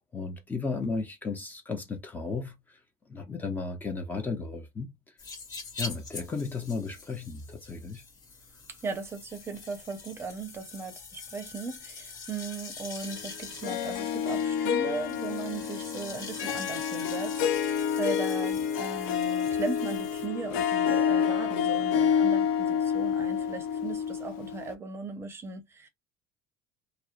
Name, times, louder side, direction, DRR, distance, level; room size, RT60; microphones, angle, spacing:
voice 1, 0.1-2.8 3.1-4.9 5.8-8.0, left 4 dB, 15° left, 0.5 m, -34 dB
sound 1, 5.2-20.3, left 4 dB, 40° left, 1.0 m, -44 dB
voice 2, 8.7-25.9, right 4 dB, 25° right, 0.6 m, -38 dB
Harp, 13.6-24.7, left 8 dB, 85° left, 0.4 m, -28 dB
2.7 x 2.0 x 2.3 m
cardioid pair, 120°, 10 cm